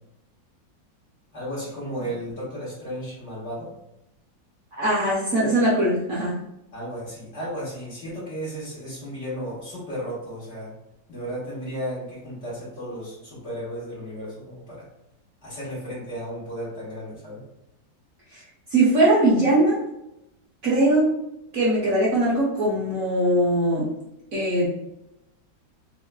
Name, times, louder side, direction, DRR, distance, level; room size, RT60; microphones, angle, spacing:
voice 1, 1.3-3.7 6.7-10.7 11.1-14.9 15.4-17.4, equal, 40° left, -8 dB, 1.9 m, -34 dB
voice 2, 4.8-6.3 18.7-19.8 20.6-21.1 21.5-23.9 24.3-24.7, right 1 dB, 55° right, -6 dB, 1.2 m, -20 dB
4.6 x 2.8 x 2.2 m, 0.86 s
omnidirectional pair, 2.0 m